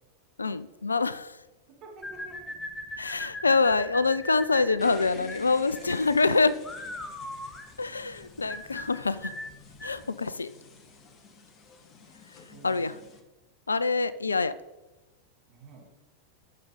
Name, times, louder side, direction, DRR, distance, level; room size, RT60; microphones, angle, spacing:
voice 1, 0.4-1.4 3.0-6.6 7.8-9.3 9.8-10.5 12.6-12.9 13.7-14.5, left 4 dB, 80° left, 17 dB, 0.4 m, -25 dB
voice 2, 1.7-2.6 5.5-5.9 12.5-13.1 15.5-15.9, right 3 dB, 40° right, 0 dB, 2.7 m, -50 dB
sound 1, 2.0-10.0, left 1 dB, 10° left, 1.1 m, -40 dB
sound 2, 4.8-13.2, left 5 dB, 35° left, 1.2 m, -51 dB
9.7 x 6.5 x 5.1 m, 1.1 s
figure-of-eight pair, 90°, 0 cm